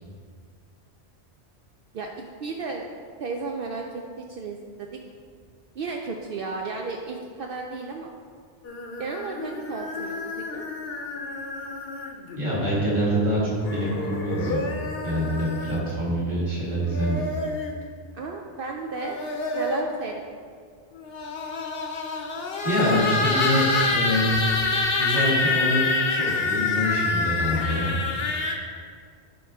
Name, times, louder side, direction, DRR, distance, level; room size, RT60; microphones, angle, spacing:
voice 1, 2.4-2.9 3.2-4.9 5.7-8.1 9.0-10.6 18.1-19.2 19.5-20.2, right 4 dB, 65° right, 1 dB, 0.7 m, -33 dB
sound 1, 8.6-12.4 13.6-15.9 16.7-17.7 18.8-20.0 21.0-28.5, left 3 dB, 65° left, 0.9 m, -27 dB
voice 2, 12.3-14.7 15.0-17.2 22.6-23.7 23.9-24.4 25.0-28.0, equal, 45° right, -8 dB, 2.1 m, -25 dB
10.0 x 4.6 x 3.5 m, 2.1 s
omnidirectional pair, 1.1 m